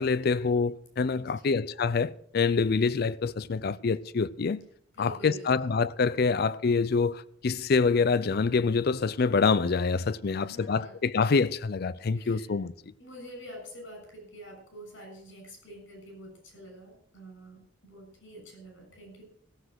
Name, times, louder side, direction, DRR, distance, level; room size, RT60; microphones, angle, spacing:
voice 1, 0.0-4.6 5.0-12.7, left 4 dB, 50° left, 0.4 m, -26 dB
voice 2, 1.2-1.6 4.9-5.5 10.3-11.0 12.1-12.5 13.0-19.2, equal, 70° left, 7.1 m, -47 dB
16.5 x 7.9 x 6.3 m
head